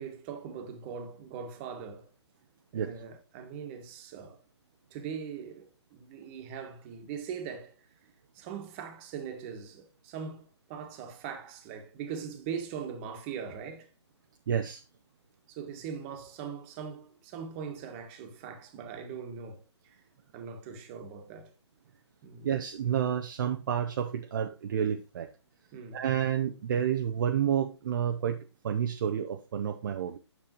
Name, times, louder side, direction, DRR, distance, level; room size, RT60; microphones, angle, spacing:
voice 1, 0.0-2.1 2.7-4.4 4.9-7.9 8.3-13.9 15.5-20.0 20.3-21.5 22.2-22.5 25.7-26.0, right 7 dB, 25° right, 1.5 m, -41 dB
voice 2, 14.5-14.8 22.4-25.3 25.9-30.2, right 9 dB, 45° right, 0.6 m, -30 dB
8.9 x 6.9 x 3.0 m
figure-of-eight pair, 140°, 15 cm